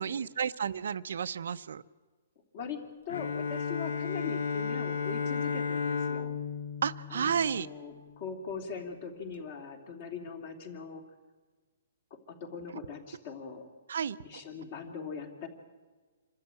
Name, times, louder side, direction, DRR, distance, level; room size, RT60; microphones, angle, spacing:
voice 1, 0.0-1.8 6.8-7.7 13.9-14.2, right 7 dB, 65° right, 12 dB, 0.6 m, -31 dB
voice 2, 2.5-6.3 7.1-11.0 12.1-13.7 14.2-15.5, left 6 dB, 35° left, 6 dB, 2.8 m, -41 dB
Bowed string instrument, 3.1-8.0, left 6 dB, 70° left, 1.5 m, -33 dB
27.5 x 13.5 x 8.9 m, 1.4 s
hypercardioid pair, 175°, 0 cm